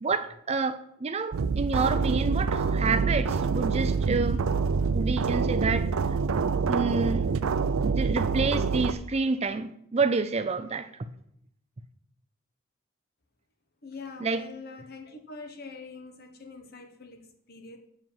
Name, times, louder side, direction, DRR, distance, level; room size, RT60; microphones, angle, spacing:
voice 1, 0.0-4.4 4.9-5.9 6.7-7.3 7.8-11.1 14.2-14.4, right 4 dB, 30° right, 0.4 m, -28 dB
sound 1, 1.3-8.9, right 5 dB, 90° right, 0.5 m, -26 dB
voice 2, 13.8-17.8, left 4 dB, 50° left, 1.3 m, -44 dB
7.6 x 4.9 x 7.3 m
head